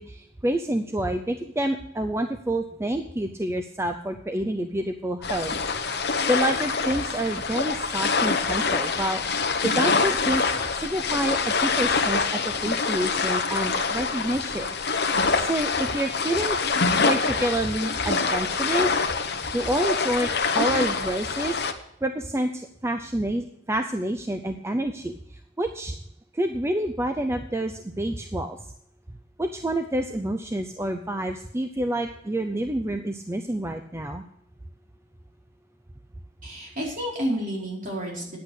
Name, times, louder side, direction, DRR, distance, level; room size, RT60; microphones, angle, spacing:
voice 1, 0.0-5.6 6.3-9.2 9.6-14.7 15.1-16.6 17.0-19.0 19.5-25.9 26.3-28.6 29.4-34.2, right 1 dB, 15° right, 6 dB, 0.5 m, -28 dB
sound 1, 5.2-21.7, left 4 dB, 60° left, 1.0 m, -25 dB
voice 2, 36.4-38.4, equal, 45° right, -3 dB, 4.5 m, -30 dB
10.5 x 8.2 x 6.5 m, 0.71 s
head